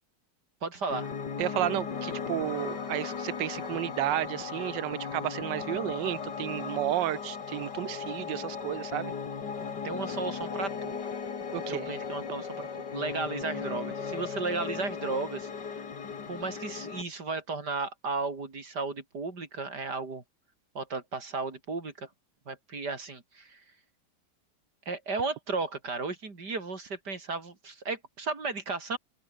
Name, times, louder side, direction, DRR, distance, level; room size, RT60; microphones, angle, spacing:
voice 1, 0.6-1.1 9.8-11.0 11.7-15.8 16.3-20.2 20.7-22.1 22.5-23.6 24.9-29.0, right 3 dB, 70° right, 4.3 m, -34 dB
Piano, 0.9-17.0, left 6 dB, 80° left, 2.8 m, -37 dB
voice 2, 1.4-9.1 11.5-11.9, right 13 dB, 90° right, 1.4 m, -32 dB
open air
omnidirectional pair, 1.9 m